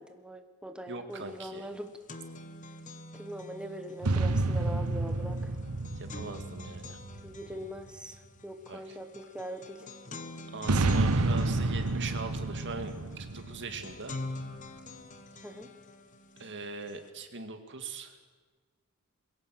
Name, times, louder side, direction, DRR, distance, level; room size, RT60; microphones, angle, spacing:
voice 1, 0.0-1.9 3.1-5.5 7.2-9.9 15.4-15.7, equal, 5° right, 7 dB, 1.2 m, -42 dB
voice 2, 0.9-1.7 6.0-7.0 8.7-8.8 10.5-14.2 16.4-18.1, right 4 dB, 55° right, 6 dB, 2.1 m, -41 dB
sound 1, 1.2-1.3 1.6-17.1, left 2 dB, 35° left, 1.2 m, -46 dB
sound 2, 4.0-7.7 10.6-14.4, right 2 dB, 90° right, 1.1 m, -30 dB
21.5 x 17.5 x 7.7 m, 1.4 s
head